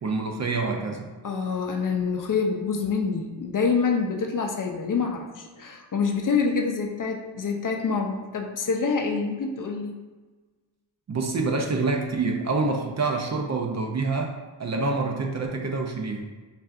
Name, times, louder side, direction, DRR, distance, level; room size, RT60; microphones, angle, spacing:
voice 1, 0.0-1.1 11.1-16.3, right 3 dB, 40° right, 2 dB, 0.5 m, -27 dB
voice 2, 1.2-9.9, left 5 dB, 45° left, 2 dB, 0.6 m, -26 dB
5.4 x 2.5 x 2.5 m, 1.3 s
cardioid pair, 80°, 45 cm